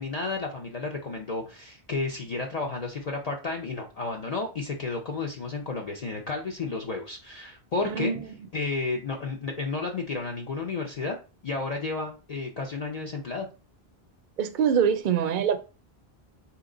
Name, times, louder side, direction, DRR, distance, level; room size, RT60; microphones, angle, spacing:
voice 1, 0.0-8.1 8.5-11.2 11.4-13.5, left 3 dB, 50° left, 0.6 m, -32 dB
voice 2, 7.9-8.2 14.4-15.6, right 7 dB, 60° right, 0.6 m, -24 dB
4.1 x 2.9 x 3.8 m
omnidirectional pair, 1.1 m